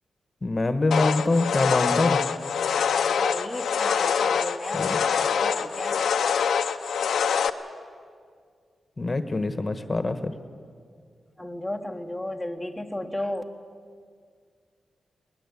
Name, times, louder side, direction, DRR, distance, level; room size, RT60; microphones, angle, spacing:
voice 1, 0.4-2.2 4.7-5.0 9.0-10.3, left 2 dB, 30° left, 10 dB, 1.3 m, -24 dB
sound 1, 0.9-7.5, left 7 dB, 85° left, 0.8 m, -25 dB
voice 2, 3.2-6.1 11.4-13.4, left 1 dB, 5° left, 1 dB, 1.2 m, -33 dB
20.5 x 20.5 x 8.5 m, 2.1 s
cardioid pair, 85°, 0 cm